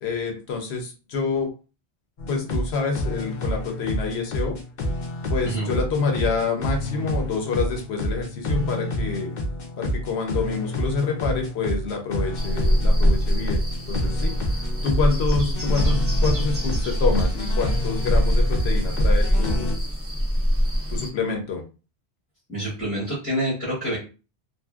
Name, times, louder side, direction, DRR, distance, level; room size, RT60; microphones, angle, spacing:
voice 1, 0.0-1.5 2.3-4.6 5.3-9.3 9.8-14.3 14.8-19.8 20.9-21.6, left 4 dB, 75° left, 3 dB, 1.0 m, -27 dB
sound 1, 2.2-19.7, left 1 dB, 50° left, 0.6 m, -29 dB
sound 2, 12.4-21.1, equal, 15° right, 0.6 m, -23 dB
voice 2, 22.5-24.0, right 1 dB, 15° left, -6 dB, 0.8 m, -27 dB
2.7 x 2.6 x 2.3 m, 0.33 s
omnidirectional pair, 1.1 m